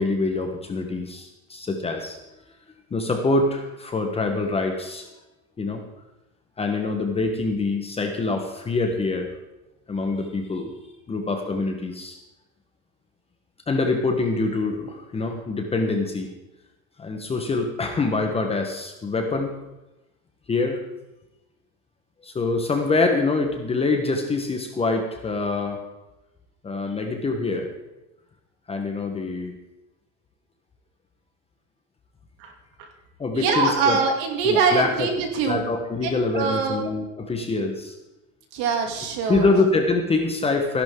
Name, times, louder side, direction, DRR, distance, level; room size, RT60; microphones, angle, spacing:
voice 1, 0.0-2.2 2.9-5.1 5.6-5.8 6.6-9.3 9.9-10.7 11.1-12.2 13.7-16.3 17.0-19.5 20.5-20.8 22.2-25.8 26.6-27.7 28.7-29.6 33.2-34.0 34.4-35.1 35.5-37.9 39.3-40.8, left 3 dB, 15° left, 4 dB, 1.1 m, -25 dB
voice 2, 33.3-35.6 36.0-36.8 38.5-39.5, right 5 dB, 55° right, 3 dB, 2.7 m, -23 dB
16.0 x 11.0 x 3.7 m, 0.99 s
supercardioid pair, 150°, 43 cm